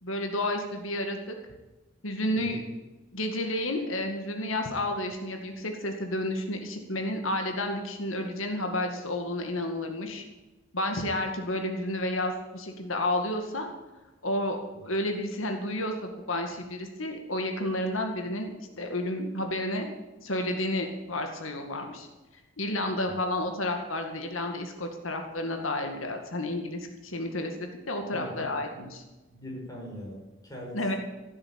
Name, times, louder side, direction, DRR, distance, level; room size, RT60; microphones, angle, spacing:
voice 1, 0.0-1.4 2.0-2.6 3.1-10.2 10.7-13.7 14.2-14.6 14.8-18.5 18.8-19.9 20.2-22.1 22.6-29.0 30.7-31.0, left 1 dB, 85° left, 4 dB, 2.1 m, -31 dB
voice 2, 22.9-23.2 28.1-28.9 29.3-31.0, equal, 20° left, -2 dB, 5.4 m, -42 dB
16.0 x 8.7 x 8.9 m, 1.1 s
head